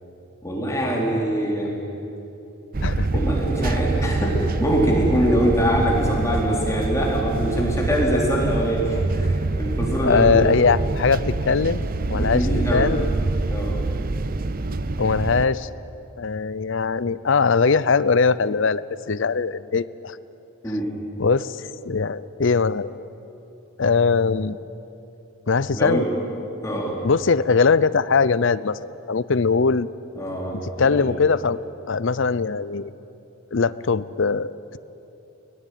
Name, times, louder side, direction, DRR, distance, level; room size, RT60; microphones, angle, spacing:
voice 1, 0.4-1.7 3.1-10.5 12.1-12.9 13.5-13.8 20.6-20.9 25.7-26.1 26.6-27.0 30.2-31.1, equal, 15° left, -2 dB, 3.6 m, -23 dB
sound 1, 2.7-15.5, right 2 dB, 40° right, 0.6 m, -25 dB
voice 2, 2.8-3.2 10.0-13.0 15.0-15.7 16.2-20.2 21.2-22.9 23.8-24.6 25.5-26.1 27.0-29.9 30.8-31.6 31.9-32.9 33.5-34.8, left 5 dB, 60° left, 17 dB, 0.6 m, -21 dB
22.5 x 18.5 x 9.3 m, 3.0 s
head